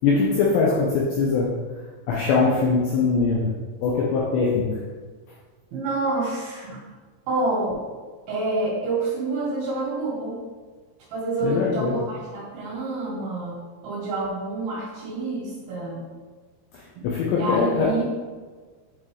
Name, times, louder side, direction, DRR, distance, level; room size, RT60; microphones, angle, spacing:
voice 1, 0.0-1.6 2.1-3.5 3.8-4.8 11.4-12.0 16.7-17.9, left 4 dB, 85° left, -3 dB, 2.5 m, -22 dB
voice 2, 5.7-6.8 7.3-7.8 8.3-10.4 11.1-13.5 13.8-16.0 16.9-18.0, right 2 dB, 65° right, -6 dB, 3.0 m, -28 dB
9.1 x 4.6 x 3.1 m, 1.4 s
omnidirectional pair, 5.8 m